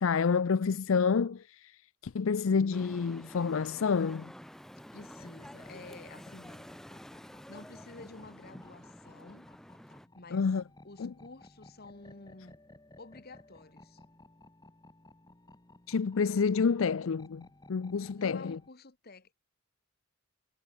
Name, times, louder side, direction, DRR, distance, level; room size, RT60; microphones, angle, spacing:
voice 1, 0.0-4.3 10.3-10.6 11.0-11.1 15.9-18.6, left 5 dB, 65° left, 0.5 m, -29 dB
sound 1, 2.7-10.1, equal, ahead, 0.4 m, -50 dB
voice 2, 4.9-6.7 7.2-9.5 10.1-10.5 10.8-12.6 13.0-14.0 18.1-19.3, left 3 dB, 45° left, 1.4 m, -51 dB
sound 2, 5.0-18.7, left 1 dB, 20° left, 1.3 m, -57 dB
head